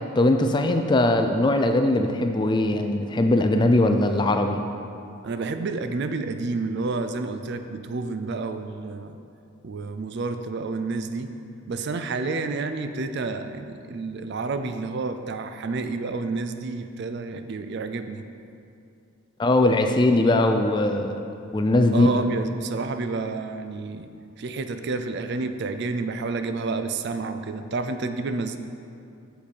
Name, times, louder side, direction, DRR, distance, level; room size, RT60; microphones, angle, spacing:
voice 1, 0.0-4.6 19.4-21.2 21.5-22.1, left 2 dB, 20° left, 6 dB, 0.3 m, -20 dB
voice 2, 5.2-9.2 9.6-11.3 11.7-18.2 21.9-24.1 24.4-28.6, right 3 dB, 50° right, 9 dB, 0.4 m, -30 dB
7.2 x 6.8 x 4.5 m, 2.6 s
head